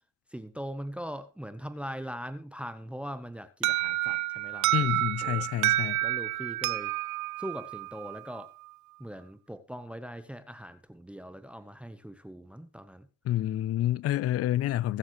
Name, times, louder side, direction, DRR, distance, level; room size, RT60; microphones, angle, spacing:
voice 1, 0.3-4.9 5.2-5.5 6.0-6.9 7.4-8.5 9.0-13.1, equal, 5° right, 0.9 m, -41 dB
Alarm, 3.6-8.4, right 17 dB, 70° right, 0.6 m, -29 dB
voice 2, 4.7-6.0 13.2-15.0, left 13 dB, 55° left, 0.5 m, -28 dB
21.5 x 7.3 x 3.1 m
cardioid pair, 90°, 30 cm